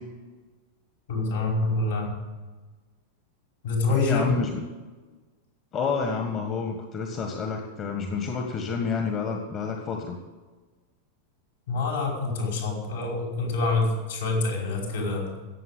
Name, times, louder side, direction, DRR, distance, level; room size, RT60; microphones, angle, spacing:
voice 1, 1.1-2.1 3.6-4.4 11.7-15.4, left 3 dB, 65° left, 0 dB, 5.1 m, -26 dB
voice 2, 3.9-4.6 5.7-10.2, left 5 dB, 30° left, 4 dB, 1.5 m, -29 dB
16.5 x 7.5 x 8.3 m, 1.3 s
figure-of-eight pair, 90°, 0 cm